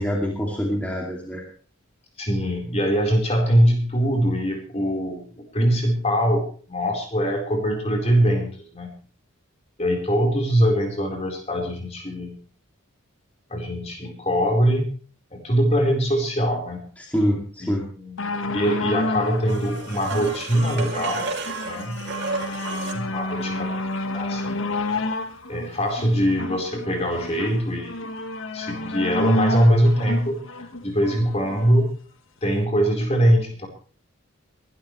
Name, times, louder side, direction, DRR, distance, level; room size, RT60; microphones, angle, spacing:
voice 1, 0.0-1.4 17.0-17.9, equal, 5° left, -2 dB, 2.6 m, -25 dB
voice 2, 2.2-8.9 9.8-12.3 13.5-14.9 15.3-16.9 17.6-21.3 21.6-22.0 22.9-23.7 24.1-24.6 25.5-28.1 28.5-31.9 32.4-33.7, equal, 30° left, 2 dB, 4.2 m, -22 dB
sound 1, 18.2-31.7 32.5-32.6, left 2 dB, 65° left, 1.5 m, -30 dB
sound 2, 19.5-23.1 26.0-26.1, right 4 dB, 50° right, 2.7 m, -32 dB
22.5 x 13.0 x 3.2 m, 0.41 s
head